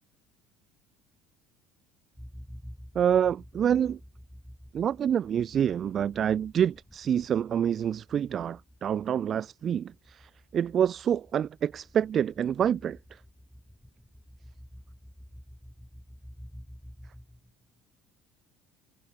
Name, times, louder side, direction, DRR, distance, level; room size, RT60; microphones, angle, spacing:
sound 1, 2.1-17.8, equal, ahead, 7.4 m, -50 dB
voice 1, 2.9-4.0 4.7-13.2, right 9 dB, 35° right, 0.4 m, -27 dB
cardioid pair, 140°, 0 cm